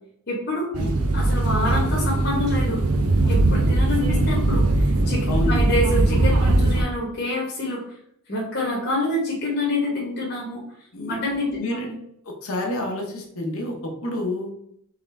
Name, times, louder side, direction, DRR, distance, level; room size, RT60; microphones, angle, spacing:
voice 1, 0.3-0.7 1.1-2.8 3.3-7.8 8.3-10.6 11.1-11.8, left 1 dB, 50° left, -3 dB, 1.1 m, -27 dB
sound 1, 0.7-6.8, right 2 dB, 80° right, 0.6 m, -20 dB
voice 2, 5.3-5.6 10.9-11.9 12.4-14.5, left 1 dB, 70° left, 1 dB, 1.0 m, -29 dB
3.8 x 3.6 x 3.3 m, 0.72 s
head